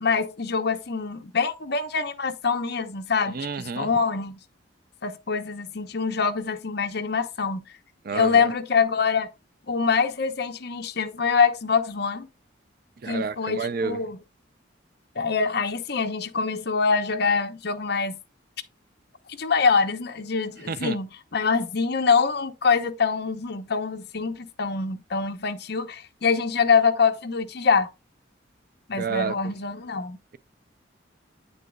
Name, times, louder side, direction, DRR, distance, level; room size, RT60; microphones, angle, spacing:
voice 1, 0.0-4.4 5.0-7.6 8.1-9.3 9.7-12.3 13.1-14.2 15.1-18.2 19.4-27.9 28.9-30.2, left 5 dB, 55° left, 0.8 m, -24 dB
voice 2, 3.3-3.9 8.0-8.5 13.0-14.0 20.7-21.0 29.0-29.4, right 5 dB, 50° right, 0.4 m, -29 dB
8.7 x 6.7 x 2.3 m
head